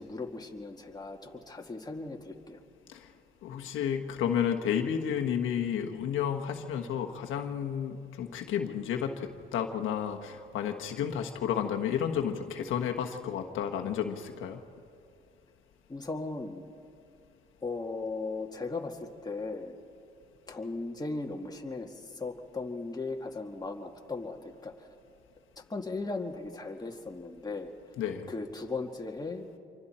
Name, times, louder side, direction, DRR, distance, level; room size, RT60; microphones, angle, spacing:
voice 1, 0.0-2.6 15.9-16.6 17.6-19.8 20.5-24.9 25.7-27.7 28.3-29.5, left 3 dB, 20° left, 2 dB, 1.9 m, -37 dB
voice 2, 3.4-14.6 28.0-28.3, left 8 dB, 85° left, 3 dB, 1.3 m, -32 dB
27.0 x 24.0 x 4.4 m, 2.5 s
cardioid pair, 90°, 20 cm